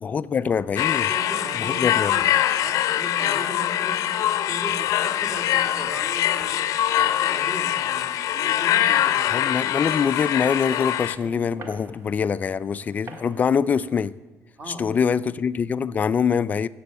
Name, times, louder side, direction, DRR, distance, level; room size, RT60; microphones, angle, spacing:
voice 1, 0.0-1.1 1.5-2.1 9.3-14.1 14.7-16.7, left 6 dB, 25° left, 0.3 m, -24 dB
sound 1, 0.8-11.2, left 12 dB, 65° left, 0.6 m, -23 dB
voice 2, 0.9-2.3 2.6-6.7 7.0-9.4 14.6-14.9, right 1 dB, 25° right, 2.2 m, -38 dB
sound 2, 8.7-14.0, right 3 dB, 45° right, 1.6 m, -45 dB
15.0 x 7.6 x 8.2 m
cardioid pair, 170°, 6 cm